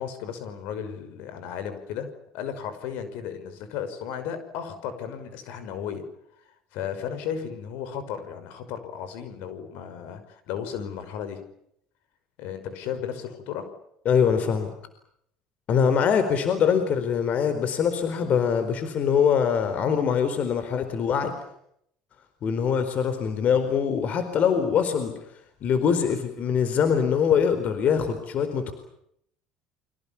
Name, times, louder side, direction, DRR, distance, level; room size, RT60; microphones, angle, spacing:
voice 1, 0.0-2.1 2.3-6.0 6.5-11.4 12.4-13.7 14.3-14.4, left 8 dB, 70° left, 10 dB, 5.7 m, -34 dB
voice 2, 14.0-14.7 15.7-21.3 22.4-25.1 25.6-28.7, left 7 dB, 50° left, 9 dB, 4.4 m, -23 dB
30.0 x 25.0 x 7.2 m, 0.73 s
supercardioid pair, 85°, 3 cm